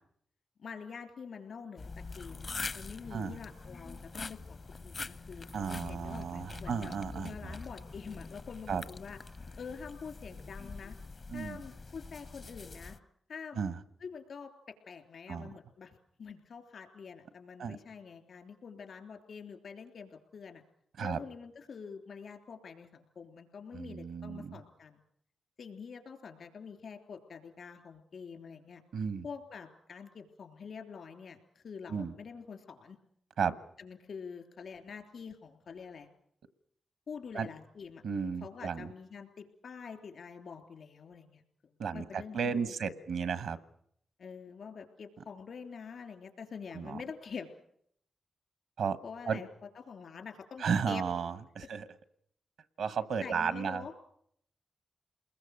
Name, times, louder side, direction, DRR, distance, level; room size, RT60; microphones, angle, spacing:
voice 1, 0.6-1.9 2.2-9.2 9.6-11.0 11.3-13.0 13.3-13.6 14.0-14.5 14.9-20.6 21.0-25.0 25.6-28.8 29.2-33.0 33.8-36.1 37.1-38.0 38.4-42.7 44.2-47.5 49.0-49.5 49.8-51.0 53.2-53.9, left 6 dB, 75° left, 6 dB, 3.4 m, -46 dB
sound 1, 1.8-13.0, left 3 dB, 55° left, 0.9 m, -44 dB
voice 2, 5.5-7.6 8.7-8.8 11.3-11.6 13.5-13.7 15.3-15.5 17.6-17.8 21.0-21.2 23.7-24.6 28.9-29.3 31.9-32.1 33.4-33.5 37.3-37.5 38.0-38.9 41.8-43.6 46.7-47.0 48.8-49.0 49.3-49.4 50.6-51.9 52.8-53.8, right 6 dB, 85° right, 13 dB, 1.2 m, -34 dB
29.0 x 21.0 x 6.6 m, 0.70 s
supercardioid pair, 40°, 0 cm